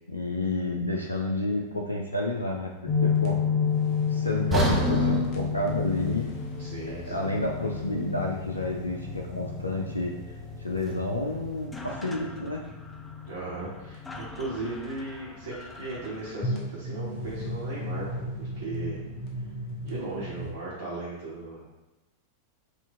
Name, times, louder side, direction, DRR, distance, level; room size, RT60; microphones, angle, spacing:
voice 1, 0.1-3.4 4.1-6.3 6.9-12.6, left 1 dB, 85° left, 0 dB, 0.4 m, -30 dB
sound 1, 2.9-20.5, left 5 dB, 40° left, 0.9 m, -32 dB
sound 2, 4.5-8.6 8.9-9.1 9.7-9.8, equal, 15° right, 0.7 m, -30 dB
voice 2, 6.6-7.3 13.3-19.0 19.8-21.6, right 2 dB, 70° right, -10 dB, 1.3 m, -37 dB
sound 3, 11.3-11.4 11.5-16.3, left 2 dB, 10° left, 0.4 m, -45 dB
4.3 x 2.5 x 3.6 m, 1.0 s
figure-of-eight pair, 90°, 0 cm